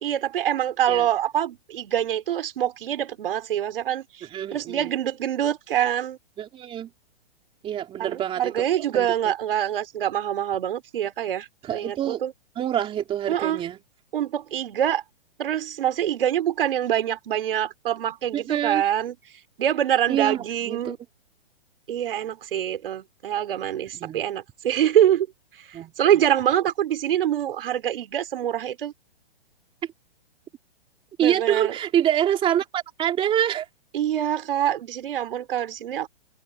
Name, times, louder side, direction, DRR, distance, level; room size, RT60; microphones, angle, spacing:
voice 1, 0.0-4.0 4.5-6.2 8.0-12.3 13.3-13.6 14.1-15.0 15.4-19.1 19.6-21.0 21.9-25.3 26.0-28.9 31.2-31.7 33.9-36.1, right 10 dB, 60° right, 4.3 m, -25 dB
voice 2, 4.2-4.9 6.4-6.9 7.6-9.1 11.6-12.2 12.6-13.8 18.3-18.8 20.1-21.0 23.9-24.2 25.7-25.9 31.2-33.7, right 10 dB, 15° right, 3.5 m, -26 dB
hypercardioid pair, 145°, 31 cm